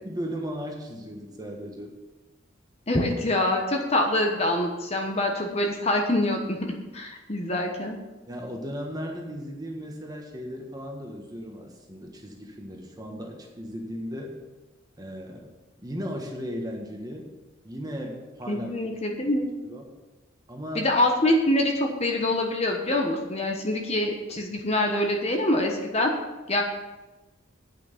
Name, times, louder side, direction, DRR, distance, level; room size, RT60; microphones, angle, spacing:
voice 1, 0.0-1.9 8.3-14.4 15.0-15.5 15.8-17.3 17.6-18.7 19.7-19.9 20.5-20.9, equal, 20° right, 1 dB, 1.4 m, -36 dB
voice 2, 2.9-8.0 18.5-19.5 20.7-26.1 26.5-26.6, left 1 dB, 30° left, 2 dB, 1.1 m, -25 dB
8.9 x 5.9 x 7.3 m, 1.1 s
head